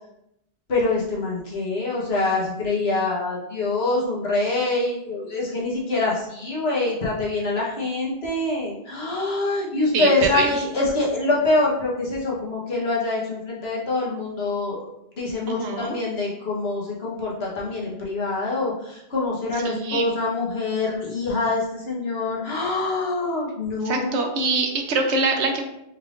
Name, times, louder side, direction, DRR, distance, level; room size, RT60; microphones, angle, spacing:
voice 1, 0.7-24.5, left 2 dB, 65° left, -5 dB, 1.3 m, -25 dB
voice 2, 9.9-10.6 15.5-16.0 19.6-20.1 23.8-25.6, right 3 dB, 80° right, 4 dB, 1.0 m, -24 dB
4.5 x 3.3 x 2.5 m, 0.81 s
omnidirectional pair, 1.1 m